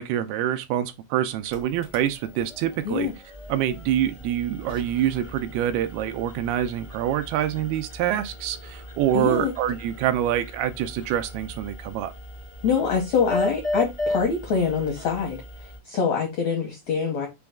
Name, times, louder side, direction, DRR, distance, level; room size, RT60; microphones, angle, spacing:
voice 1, 0.0-3.1 3.5-12.1, right 11 dB, 85° right, 2.4 m, -26 dB
sound 1, 1.3-15.8, left 1 dB, 40° left, 0.5 m, -36 dB
voice 2, 9.1-9.5 12.6-15.4 15.9-17.3, left 6 dB, 80° left, 1.6 m, -24 dB
6.0 x 2.3 x 3.4 m
omnidirectional pair, 4.5 m